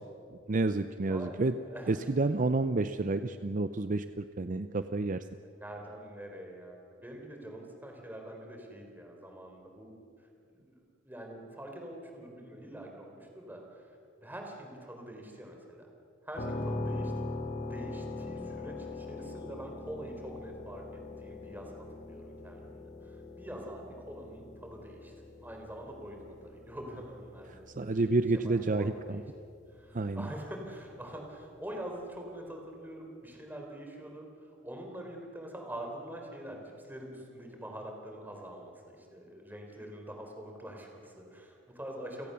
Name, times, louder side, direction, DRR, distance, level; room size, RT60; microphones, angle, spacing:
voice 1, 0.5-1.5 1.9-5.2 27.8-29.2 29.9-30.3, right 3 dB, 40° right, 11 dB, 0.6 m, -29 dB
voice 2, 1.1-2.0 5.4-13.9 14.2-15.9 16.2-17.1 17.6-20.8 21.2-25.1 25.4-28.0 28.3-29.2 29.7-42.3, right 1 dB, 10° right, 2 dB, 4.0 m, -45 dB
sound 1, 16.3-30.1, left 2 dB, 40° left, 1.6 m, -42 dB
29.5 x 17.5 x 6.9 m, 2.4 s
head